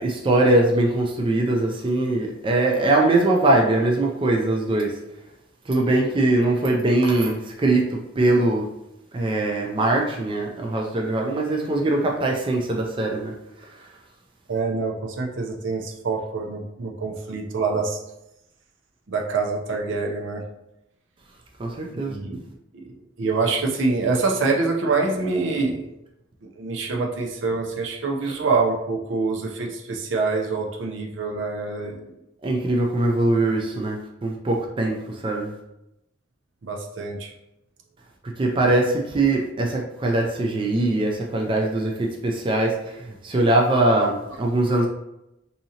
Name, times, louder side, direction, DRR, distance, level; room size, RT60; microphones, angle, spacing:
voice 1, 0.0-4.9 5.7-8.6 9.1-13.3 21.6-22.2 32.4-35.5 38.4-44.9, right 2 dB, 25° right, 0 dB, 0.4 m, -22 dB
voice 2, 14.5-18.0 19.1-20.4 21.9-22.4 22.7-25.9 26.4-32.1 36.6-37.3, right 4 dB, 70° right, 0 dB, 0.6 m, -25 dB
3.7 x 2.8 x 2.8 m, 0.87 s
head